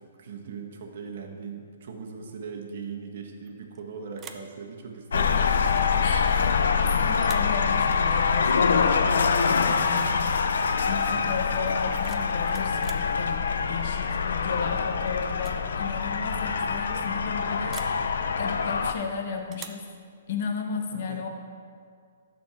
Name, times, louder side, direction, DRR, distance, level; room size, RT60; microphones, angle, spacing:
voice 1, 0.0-5.4 20.9-21.3, right 5 dB, 60° right, 2 dB, 1.2 m, -39 dB
sound 1, 3.5-3.8 4.1-4.6 6.4-6.8 7.1-7.6 9.4-9.6 9.9-10.3 11.7-13.1 14.6-14.9 15.3-15.6 15.9-16.0 17.7-18.0 19.5-19.9, right 7 dB, 20° right, 0.5 m, -46 dB
sound 2, 5.1-18.9, left 5 dB, 80° left, 0.5 m, -25 dB
voice 2, 5.2-5.5 6.0-10.4 10.8-13.4 13.7-19.8 20.3-21.3, left 5 dB, 55° left, 3 dB, 1.1 m, -34 dB
12.0 x 4.3 x 4.4 m, 2.2 s
hypercardioid pair, 145°, 0 cm